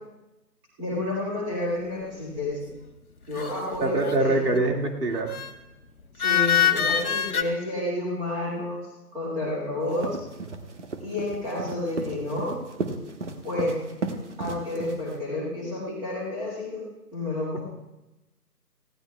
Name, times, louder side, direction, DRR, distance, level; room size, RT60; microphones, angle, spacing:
voice 1, 0.8-2.7 3.3-4.5 6.2-8.9 9.1-10.2 11.0-12.5 13.4-13.8 14.4-16.8 17.1-17.6, left 1 dB, 10° right, -6 dB, 2.2 m, -30 dB
sound 1, 3.4-4.4 5.3-5.5 6.2-7.4, left 9 dB, 65° left, 1.3 m, -24 dB
voice 2, 3.8-5.3, right 2 dB, 70° right, 2 dB, 2.4 m, -24 dB
sound 2, 9.8-15.2, right 3 dB, 45° right, 1.3 m, -34 dB
20.0 x 16.0 x 2.4 m, 0.98 s
figure-of-eight pair, 160°, 48 cm